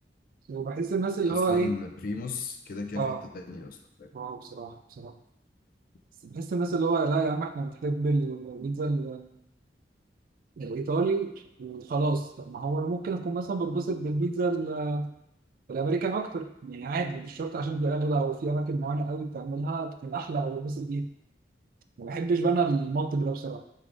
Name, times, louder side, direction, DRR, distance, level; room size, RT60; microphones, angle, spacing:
voice 1, 0.5-1.7 3.0-3.2 4.1-5.1 6.2-9.3 10.6-11.3 11.6-15.1 15.7-21.1 22.0-23.6, right 3 dB, 55° right, 8 dB, 0.3 m, -29 dB
voice 2, 1.2-4.1, left 3 dB, 55° left, 5 dB, 0.4 m, -36 dB
4.7 x 3.7 x 2.5 m, 0.84 s
head